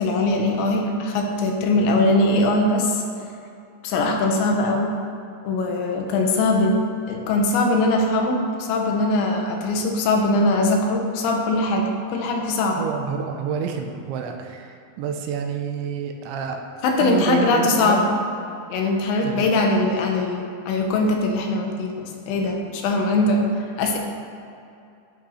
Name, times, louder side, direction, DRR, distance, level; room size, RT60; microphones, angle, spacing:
voice 1, 0.0-3.0 3.8-4.9 5.4-6.8 7.1-12.9 16.8-18.1 18.7-24.0, left 2 dB, 75° left, 2 dB, 3.3 m, -21 dB
voice 2, 12.8-16.6 17.0-18.1 19.2-19.5, right 6 dB, 80° right, 4 dB, 3.1 m, -28 dB
11.5 x 9.2 x 5.7 m, 2.6 s
omnidirectional pair, 5.5 m